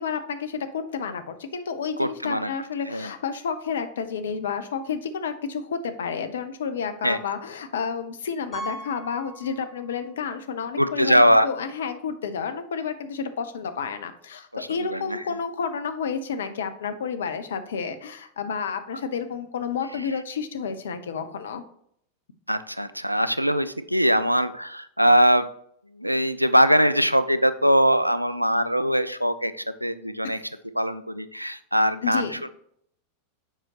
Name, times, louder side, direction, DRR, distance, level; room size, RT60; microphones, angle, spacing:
voice 1, 0.0-21.6 30.2-30.4 32.0-32.4, left 6 dB, 65° left, 9 dB, 0.6 m, -30 dB
voice 2, 2.0-2.5 2.9-3.1 7.0-7.2 10.8-11.5 14.8-15.2 22.5-25.5 26.0-30.4 30.7-32.5, equal, 90° right, 13 dB, 0.3 m, -22 dB
Piano, 8.5-10.1 10.4-10.5 11.1-11.2 11.5-11.6 13.6-13.7, right 2 dB, 10° right, 2.3 m, -39 dB
7.2 x 5.0 x 2.9 m, 0.69 s
figure-of-eight pair, 90°, 0 cm